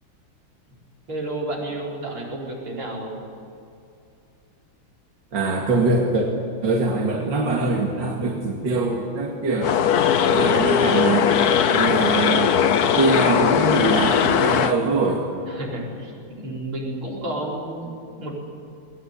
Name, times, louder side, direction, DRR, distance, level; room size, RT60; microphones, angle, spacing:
voice 1, 1.1-3.2 11.7-12.2 15.5-17.9 18.2-18.4, right 1 dB, 85° right, -3 dB, 5.7 m, -31 dB
voice 2, 5.3-6.3 6.6-9.7 10.2-11.3 11.7-12.6 13.0-15.2, right 3 dB, 60° right, -1 dB, 2.7 m, -23 dB
sound 1, 9.6-14.7, left 8 dB, 60° left, 1.2 m, -19 dB
21.5 x 19.0 x 9.8 m, 2.5 s
omnidirectional pair, 2.3 m